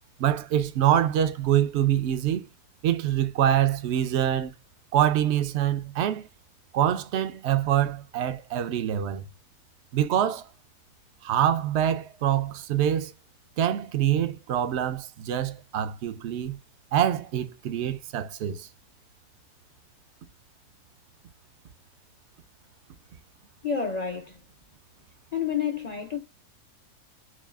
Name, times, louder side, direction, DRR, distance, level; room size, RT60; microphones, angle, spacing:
voice 1, 0.2-2.5 2.8-4.5 4.9-6.3 6.7-9.3 9.9-10.5 11.2-13.1 13.6-16.6 16.9-18.7, right 10 dB, 70° right, 0.6 m, -25 dB
voice 2, 23.6-24.4 25.3-26.2, left 7 dB, 60° left, 0.4 m, -29 dB
5.9 x 2.3 x 2.3 m
omnidirectional pair, 1.6 m